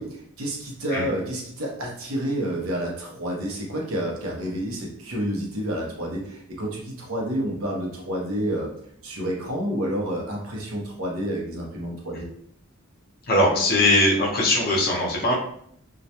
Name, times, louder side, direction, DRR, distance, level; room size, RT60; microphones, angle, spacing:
voice 1, 0.0-8.7 9.0-12.3, equal, 75° right, -2 dB, 0.7 m, -29 dB
voice 2, 13.3-15.3, left 1 dB, 45° left, -2 dB, 0.6 m, -20 dB
2.3 x 2.1 x 2.8 m, 0.68 s
head